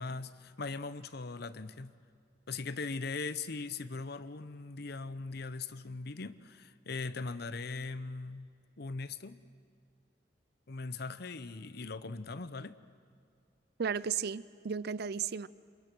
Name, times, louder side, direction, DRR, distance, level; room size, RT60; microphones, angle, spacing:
voice 1, 0.0-1.9 2.5-8.5 8.8-9.4 10.7-12.8, left 3 dB, 60° left, 14 dB, 0.9 m, -40 dB
voice 2, 13.8-15.5, right 6 dB, 60° right, 19 dB, 0.5 m, -34 dB
27.5 x 27.0 x 6.2 m, 2.3 s
head